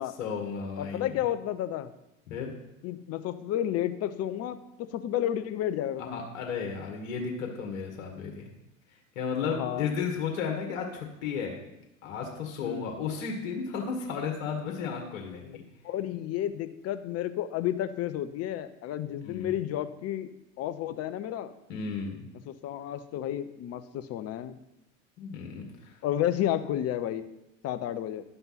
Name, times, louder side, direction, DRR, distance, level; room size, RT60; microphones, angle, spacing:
voice 1, 0.2-1.1 2.3-2.5 6.0-8.5 9.2-11.6 12.0-15.6 19.2-19.5 21.7-22.3 25.2-26.0, left 6 dB, 60° left, 1 dB, 2.0 m, -34 dB
voice 2, 0.8-1.9 2.8-6.2 9.6-9.9 12.6-12.9 15.8-20.3 20.6-21.5 22.3-24.5 26.0-27.2 27.6-28.2, left 11 dB, 40° left, 11 dB, 0.8 m, -31 dB
11.0 x 5.6 x 5.9 m, 0.89 s
figure-of-eight pair, 75°, 39 cm